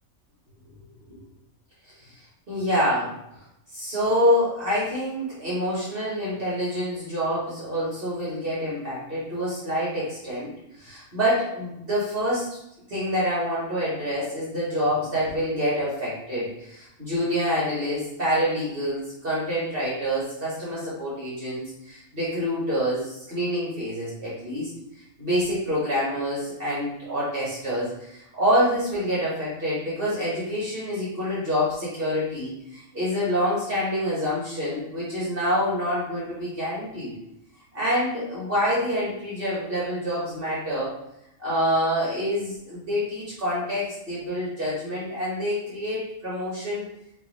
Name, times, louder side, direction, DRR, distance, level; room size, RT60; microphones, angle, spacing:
voice 1, 2.5-3.1 3.7-10.5 10.8-12.6 12.9-24.7 25.2-37.1 37.7-41.0 41.4-46.8, equal, 40° right, -7 dB, 1.3 m, -27 dB
3.0 x 3.0 x 4.0 m, 0.81 s
omnidirectional pair, 1.5 m